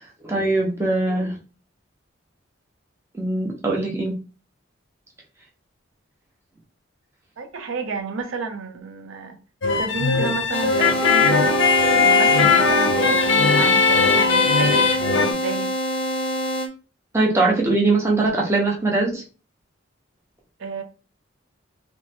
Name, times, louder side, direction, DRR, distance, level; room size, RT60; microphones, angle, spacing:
voice 1, 0.2-1.3 3.2-4.1 17.1-19.2, right 2 dB, 15° right, 0.6 m, -21 dB
voice 2, 7.4-9.4 9.8-15.7 20.6-20.8, right 4 dB, 85° right, 0.5 m, -31 dB
sound 1, 9.6-15.3, left 4 dB, 70° left, 0.5 m, -18 dB
sound 2, 10.5-16.7, equal, 30° left, 0.6 m, -26 dB
3.0 x 2.2 x 2.7 m
head